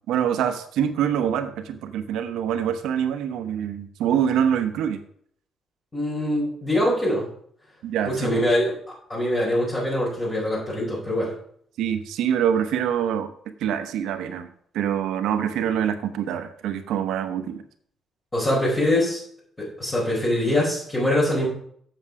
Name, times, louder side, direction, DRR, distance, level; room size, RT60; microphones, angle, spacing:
voice 1, 0.1-5.0 7.8-8.4 11.8-13.3 13.6-14.5 14.7-17.6, right 9 dB, 85° right, 9 dB, 0.9 m, -25 dB
voice 2, 5.9-7.3 8.1-8.7 9.1-11.3 18.3-19.2 19.6-21.5, left 1 dB, 25° left, -7 dB, 4.5 m, -23 dB
7.7 x 7.3 x 4.9 m, 0.63 s
cardioid pair, 90°, 0 cm